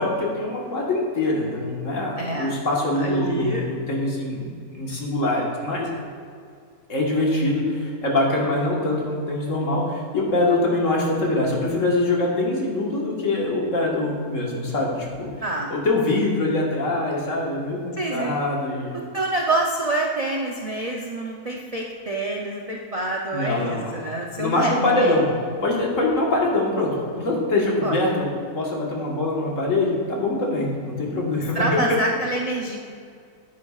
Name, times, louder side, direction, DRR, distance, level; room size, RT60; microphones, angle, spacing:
voice 1, 0.0-5.9 6.9-15.3 15.7-19.0 23.3-23.9 24.4-25.3 25.6-28.3 28.6-31.8, left 2 dB, 55° left, -2 dB, 1.7 m, -23 dB
voice 2, 2.2-2.5 3.0-3.6 15.4-15.8 18.0-18.4 19.1-25.2 27.8-28.0 31.5-32.8, right 2 dB, 55° right, -1 dB, 0.4 m, -27 dB
9.4 x 9.1 x 2.4 m, 2.2 s
omnidirectional pair, 1.6 m